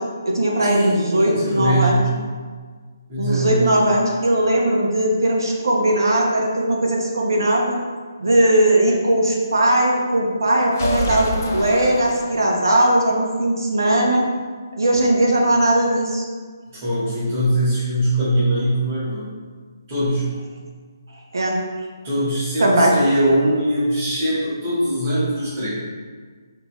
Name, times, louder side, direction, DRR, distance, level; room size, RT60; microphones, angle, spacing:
voice 1, 0.0-2.0 3.2-7.8 8.2-14.3 14.8-16.2 21.3-21.6 22.6-22.9, right 1 dB, 85° right, -1 dB, 1.0 m, -19 dB
voice 2, 0.6-2.1 3.1-3.7 16.8-19.3 19.9-20.4 22.0-25.7, right 1 dB, 25° right, -11 dB, 1.5 m, -21 dB
sound 1, 10.7-12.8, left 2 dB, 35° left, 0.5 m, -27 dB
5.4 x 2.9 x 3.1 m, 1.6 s
hypercardioid pair, 175°, 2 cm